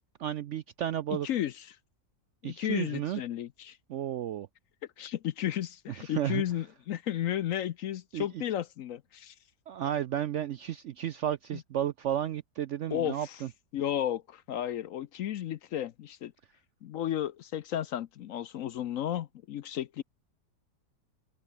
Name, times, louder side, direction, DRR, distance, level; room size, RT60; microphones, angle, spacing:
voice 1, 0.0-1.3 2.4-3.2 3.9-4.5 6.0-6.4 8.1-8.3 9.7-13.5, right 11 dB, 70° right, 0.7 m, -33 dB
voice 2, 1.2-1.7 2.4-3.8 5.0-9.3 11.5-11.6 12.9-13.4 13.7-16.3 16.8-20.0, left 11 dB, 65° left, 0.9 m, -33 dB
omnidirectional pair, 1.7 m